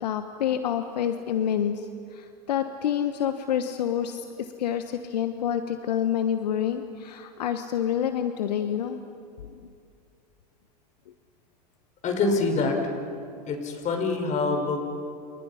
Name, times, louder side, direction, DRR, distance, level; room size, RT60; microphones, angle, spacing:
voice 1, 0.0-9.0 9.5-9.6, left 9 dB, 75° left, 8 dB, 1.2 m, -28 dB
voice 2, 12.0-13.0 13.5-14.9, left 3 dB, 35° left, 4 dB, 5.5 m, -25 dB
30.0 x 28.5 x 5.7 m, 2.5 s
hypercardioid pair, 95°, 21 cm